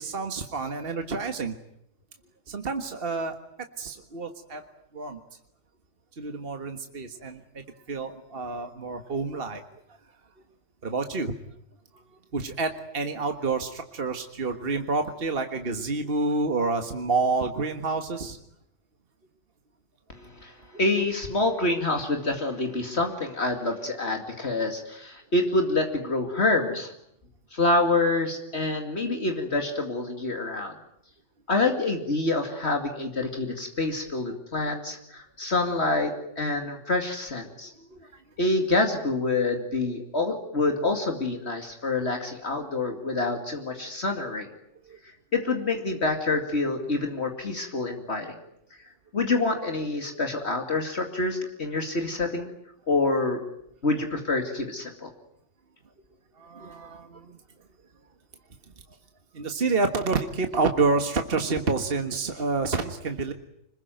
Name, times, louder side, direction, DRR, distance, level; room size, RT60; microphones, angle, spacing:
voice 1, 0.0-1.5 2.5-3.3 3.8-4.6 4.9-5.2 6.2-7.6 7.9-9.8 10.8-11.3 12.3-18.4 37.8-38.1 44.9-45.0 56.4-57.4 59.3-63.3, right 3 dB, 50° right, 6 dB, 1.8 m, -28 dB
voice 2, 20.1-26.9 27.5-30.7 31.5-37.7 38.4-44.5 45.3-48.4 49.1-52.5 52.9-53.4 53.8-55.1, left 2 dB, 65° left, 4 dB, 2.7 m, -27 dB
26.0 x 21.5 x 9.1 m, 0.76 s
omnidirectional pair, 1.2 m